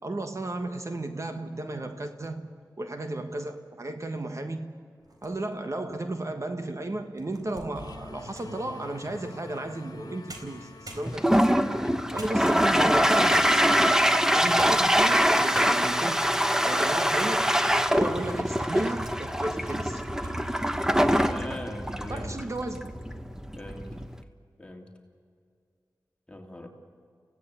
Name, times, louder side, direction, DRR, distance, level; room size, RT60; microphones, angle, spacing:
voice 1, 0.0-2.5 2.8-4.7 5.2-11.6 12.1-13.7 14.3-16.3 16.7-17.6 17.9-20.0 22.1-23.0, right 2 dB, 45° right, 1.4 m, -34 dB
sound 1, 5.0-5.7 6.3-6.4 7.0-8.6 9.9-10.0 10.3-11.5 12.2-12.9 13.3-13.8 14.4-14.9 15.2-15.3 15.5-16.1 16.7-17.4 17.8-17.9 18.5-19.2 19.6-19.8 20.1-20.4, right 2 dB, 65° right, 4.2 m, -47 dB
sound 2, 7.7-13.1, left 3 dB, 70° left, 1.5 m, -47 dB
Toilet flush, 11.0-24.2, equal, 5° right, 1.1 m, -24 dB
voice 2, 21.1-22.3 23.6-23.9 24.6-24.9 26.3-26.7, left 1 dB, 15° left, 3.0 m, -40 dB
28.5 x 16.5 x 8.3 m
wide cardioid pair, 60°, 7 cm